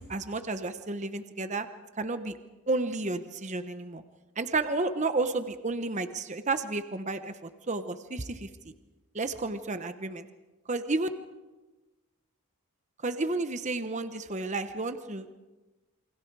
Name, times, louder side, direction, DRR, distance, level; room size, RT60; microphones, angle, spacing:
voice 1, 0.0-1.7 2.0-2.4 2.7-4.0 4.4-8.5 9.1-10.3 10.7-11.1 13.0-15.3, right 3 dB, 30° right, 9 dB, 1.0 m, -31 dB
28.5 x 24.0 x 4.8 m, 1.2 s
head